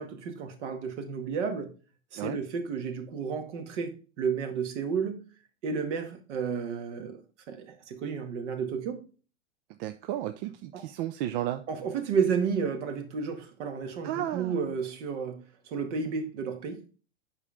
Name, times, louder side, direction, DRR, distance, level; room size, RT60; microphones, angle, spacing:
voice 1, 0.0-1.7 2.1-5.2 5.6-7.2 7.5-9.0 10.7-10.8 11.7-16.9, right 6 dB, 65° right, 1.9 m, -32 dB
voice 2, 9.8-11.6 14.0-14.6, right 13 dB, 45° right, 0.6 m, -33 dB
8.2 x 5.5 x 3.5 m
hypercardioid pair, 105°, 38 cm